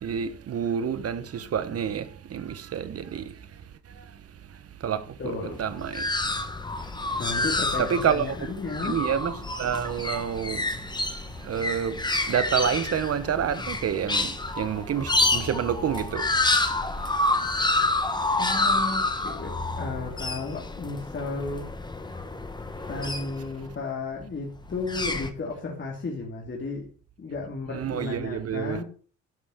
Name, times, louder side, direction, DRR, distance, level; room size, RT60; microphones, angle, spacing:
voice 1, 0.0-3.3 4.8-6.1 7.8-8.3 8.8-10.7 11.4-16.3 27.7-28.8, right 8 dB, 50° right, 1.2 m, -28 dB
voice 2, 5.2-5.6 7.2-9.0 18.4-22.2 22.9-26.9 27.2-28.8, left 3 dB, 40° left, 2.9 m, -34 dB
sound 1, 5.5-23.7 24.6-25.3, left 2 dB, 15° left, 1.4 m, -28 dB
12.0 x 5.5 x 6.5 m
cardioid pair, 90°, 30 cm